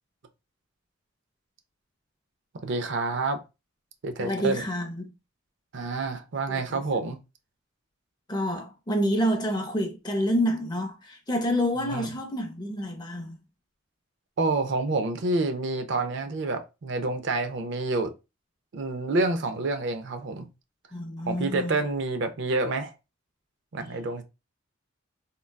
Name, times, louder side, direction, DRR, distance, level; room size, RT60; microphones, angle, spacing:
voice 1, 2.6-3.4 4.0-4.6 5.7-7.2 11.9-12.1 14.4-18.1 18.7-20.5 21.3-22.9 23.7-24.2, right 3 dB, 60° right, 0.5 m, -28 dB
voice 2, 4.2-5.1 6.5-6.8 8.3-13.4 20.9-21.8, equal, 20° left, 0.5 m, -28 dB
3.7 x 2.2 x 2.2 m
head